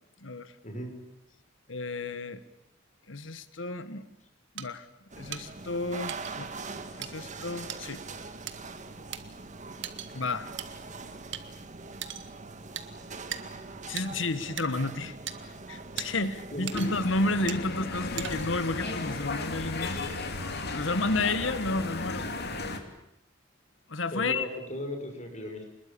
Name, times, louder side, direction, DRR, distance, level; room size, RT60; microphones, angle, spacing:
voice 1, 0.2-0.5 1.7-2.4 3.1-4.0 4.5-4.9 5.2-6.5 7.0-8.0 10.1-10.5 13.9-15.1 15.4-20.0 20.7-22.3 23.9-24.5, left 2 dB, 75° left, 12 dB, 1.5 m, -31 dB
sound 1, 4.6-4.7 5.3-5.4 6.1-6.3 7.0-7.1 7.7-7.8 8.5-8.6 9.1-9.2 9.8-10.1 10.6-10.7 11.3-11.4 12.0-12.3 12.8-12.9 13.3-13.4 14.0-14.1 14.6-14.7 15.3-15.4 16.0-16.1 16.7-17.1 17.5-17.6 18.2-18.6, right 10 dB, 65° right, 1.7 m, -37 dB
sound 2, 5.1-17.5, right 3 dB, 40° right, 2.0 m, -43 dB
voice 2, 16.5-16.8 24.1-25.6, left 1 dB, 40° left, 4 dB, 6.0 m, -36 dB
sound 3, 16.7-22.8, left 3 dB, 55° left, 3.0 m, -35 dB
26.5 x 21.0 x 8.6 m, 0.81 s
head